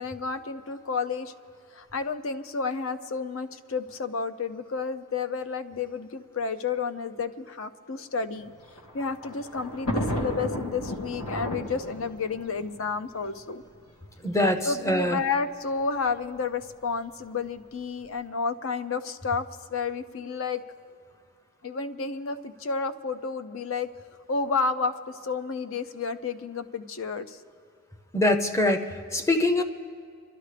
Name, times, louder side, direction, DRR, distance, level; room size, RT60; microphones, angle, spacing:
voice 1, 0.0-1.3 1.7-8.5 8.9-13.6 14.6-20.6 21.6-23.9 24.3-27.4, left 4 dB, 65° left, 10 dB, 0.6 m, -31 dB
Thunder, 8.4-13.7 14.6-14.7 14.9-15.0 16.1-16.4, equal, 85° left, 1.9 m, -33 dB
voice 2, 14.2-15.2 28.1-29.6, left 1 dB, 15° left, 6 dB, 0.6 m, -24 dB
25.0 x 12.5 x 3.3 m, 2.3 s
head